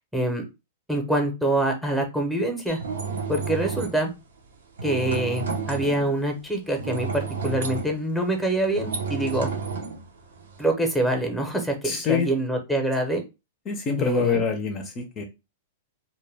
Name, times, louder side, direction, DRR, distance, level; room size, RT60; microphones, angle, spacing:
voice 1, 0.1-0.4 0.9-2.8 3.3-4.1 4.8-9.5 10.6-13.2 14.0-14.4, right 1 dB, ahead, 3 dB, 0.7 m, -25 dB
sound 1, 2.7-4.0 4.8-6.1 6.8-10.7, right 5 dB, 80° right, 0.7 m, -31 dB
voice 2, 11.8-12.3 13.7-15.2, left 5 dB, 30° left, 4 dB, 0.5 m, -25 dB
2.1 x 2.1 x 3.3 m, 0.26 s
hypercardioid pair, 125°, 0 cm